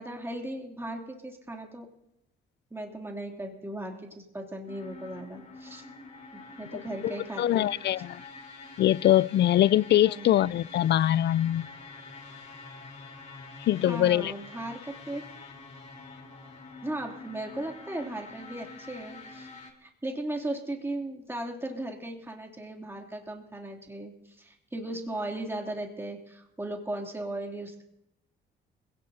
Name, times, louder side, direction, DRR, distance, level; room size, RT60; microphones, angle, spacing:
voice 1, 0.0-1.9 2.7-5.8 6.3-7.7 10.0-10.4 13.8-15.2 16.8-19.5 19.8-27.8, right 1 dB, 10° right, 2.9 m, -37 dB
sound 1, 4.7-19.7, left 3 dB, 35° left, 3.9 m, -47 dB
voice 2, 7.0-8.2 8.8-11.7 13.7-14.3, left 12 dB, 60° left, 0.5 m, -23 dB
26.0 x 17.0 x 2.8 m
cardioid pair, 90°, 20 cm